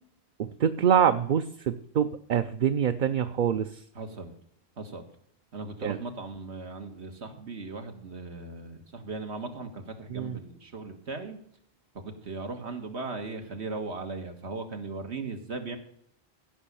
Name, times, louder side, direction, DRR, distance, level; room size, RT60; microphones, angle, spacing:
voice 1, 0.4-3.8 5.8-6.0 10.1-10.4, right 8 dB, 55° right, 9 dB, 0.7 m, -25 dB
voice 2, 4.0-4.3 4.8-5.0 5.5-11.4 12.0-15.8, right 3 dB, 85° right, 6 dB, 1.9 m, -38 dB
15.5 x 6.2 x 6.9 m, 0.68 s
omnidirectional pair, 1.1 m